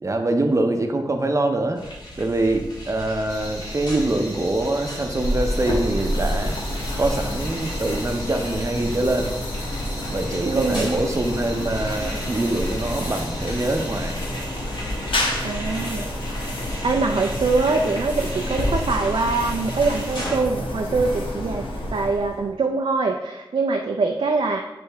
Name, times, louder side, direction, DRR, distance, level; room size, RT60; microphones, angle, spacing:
voice 1, 0.0-1.8 2.2-6.6 7.0-9.3 10.1-14.2, right 2 dB, 35° right, 5 dB, 0.6 m, -24 dB
sound 1, 1.8-20.4, equal, 55° left, 1.9 m, -35 dB
sound 2, 3.3-14.1, left 1 dB, 35° left, 1.8 m, -39 dB
sound 3, 5.2-22.5, left 1 dB, 85° left, 1.1 m, -29 dB
voice 2, 10.4-10.9 15.4-16.1 16.4-16.6 16.8-24.6, right 3 dB, 75° right, 2 dB, 0.4 m, -23 dB
8.2 x 3.4 x 3.4 m, 1.0 s
wide cardioid pair, 90°, 9 cm